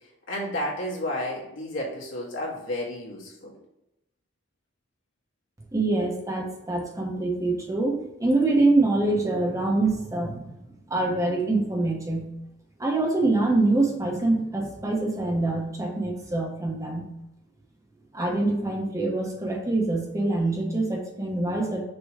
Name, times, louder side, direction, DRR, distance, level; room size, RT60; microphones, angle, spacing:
voice 1, 0.3-3.5, left 1 dB, 85° left, -4 dB, 2.0 m, -31 dB
voice 2, 5.7-12.3 12.8-17.1 18.1-21.8, right 2 dB, 15° right, 1 dB, 1.0 m, -25 dB
6.4 x 3.0 x 4.9 m, 0.90 s
head